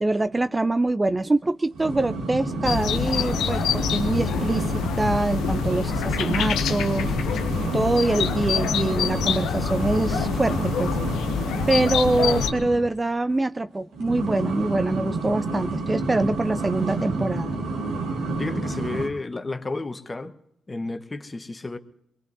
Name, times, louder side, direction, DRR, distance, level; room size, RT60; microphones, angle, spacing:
voice 1, 0.0-4.7 5.0-7.4 7.7-11.0 11.7-17.5, right 2 dB, 25° right, 11 dB, 0.5 m, -24 dB
sound 1, 1.7-12.9 13.9-19.1, right 3 dB, 80° right, 1.9 m, -30 dB
sound 2, 2.6-12.5, left 8 dB, 80° left, 0.7 m, -26 dB
voice 2, 18.4-20.4 20.7-21.8, left 2 dB, 30° left, 8 dB, 1.2 m, -31 dB
23.5 x 21.5 x 2.7 m, 0.81 s
hypercardioid pair, 45°, 0 cm